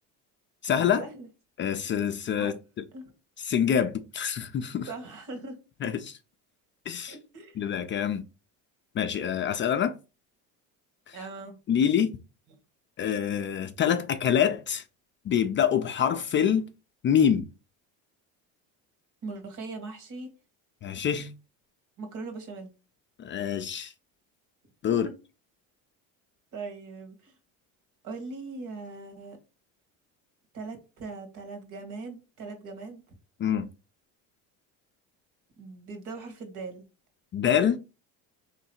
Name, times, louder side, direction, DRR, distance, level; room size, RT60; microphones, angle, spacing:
voice 1, 0.6-1.0 1.6-2.5 3.4-4.9 5.8-6.2 6.9-7.2 7.6-8.2 8.9-9.9 11.1-11.2 11.7-12.1 13.0-14.8 15.2-16.7 17.0-17.5 20.8-21.3 23.2-23.9 24.8-25.1 33.4-33.7 37.3-37.8, left 8 dB, 35° left, 0.4 m, -26 dB
voice 2, 4.9-5.6 7.1-7.6 11.1-11.6 19.2-20.3 22.0-22.7 24.9-25.1 26.5-27.3 28.0-29.4 30.5-33.0 35.6-36.8, right 3 dB, 55° right, 1.7 m, -40 dB
3.6 x 3.2 x 4.3 m
cardioid pair, 110°, 36 cm